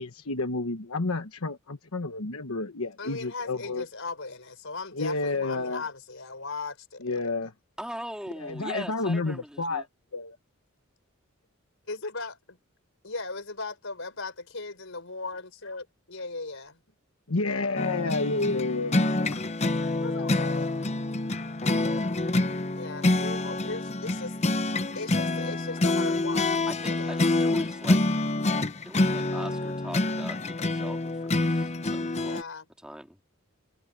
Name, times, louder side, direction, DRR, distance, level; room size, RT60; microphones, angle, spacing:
voice 1, 0.0-3.8 4.9-5.8 7.0-7.5 8.4-9.9 10.1-10.4 17.3-19.7, left 3 dB, 85° left, 1.3 m, -30 dB
voice 2, 3.0-7.2 11.9-12.6 13.0-16.8 19.9-20.7 22.8-24.4 25.0-27.2 32.2-32.7, left 3 dB, 65° left, 5.6 m, -38 dB
voice 3, 7.8-9.8 26.7-28.0 28.8-32.4 32.8-33.2, equal, 5° right, 2.6 m, -41 dB
sound 1, 17.8-32.4, left 2 dB, 30° left, 0.9 m, -27 dB
head